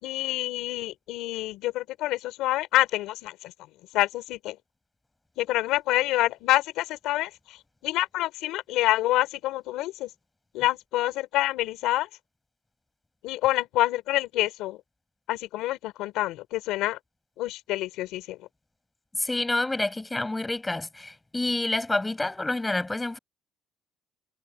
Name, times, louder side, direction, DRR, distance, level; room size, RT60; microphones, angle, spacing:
voice 1, 0.0-3.5 3.9-4.6 5.4-7.6 7.8-10.1 10.5-12.1 13.2-14.8 15.3-17.0 17.4-18.4, left 16 dB, 75° left, 3.9 m, -27 dB
voice 2, 19.1-23.2, left 2 dB, 10° left, 6.5 m, -28 dB
cardioid pair, 145°, 0 cm